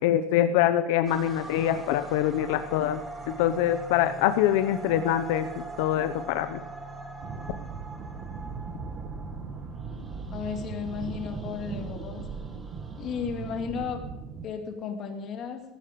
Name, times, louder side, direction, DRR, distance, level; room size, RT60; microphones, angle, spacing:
voice 1, 0.0-3.0 3.3-6.6, left 11 dB, 85° left, 9 dB, 0.8 m, -24 dB
sound 1, 1.0-13.6, right 2 dB, 15° right, 1.7 m, -42 dB
sound 2, 7.2-14.5, right 5 dB, 40° right, 1.2 m, -38 dB
voice 2, 10.3-12.3 13.0-14.1 14.4-15.6, left 6 dB, 35° left, 4 dB, 2.3 m, -34 dB
15.0 x 11.5 x 5.3 m, 0.93 s
cardioid pair, 170°, 0 cm